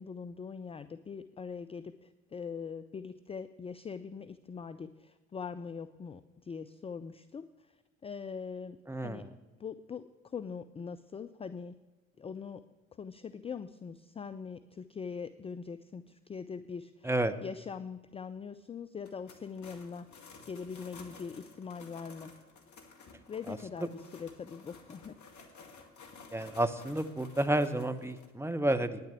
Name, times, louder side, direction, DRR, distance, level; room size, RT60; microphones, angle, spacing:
voice 1, 0.0-7.7 8.0-8.8 9.0-9.2 9.6-11.7 12.2-12.6 13.0-17.1 17.4-20.1 20.5-22.3 23.3-25.2, left 6 dB, 15° left, 12 dB, 0.3 m, -42 dB
voice 2, 8.9-9.3 17.0-17.3 23.5-23.9 26.3-29.0, right 1 dB, 5° right, 10 dB, 0.8 m, -31 dB
sound 1, 19.0-28.3, left 4 dB, 45° left, 2.0 m, -54 dB
9.8 x 6.8 x 8.3 m, 1.2 s
hypercardioid pair, 50°, 40 cm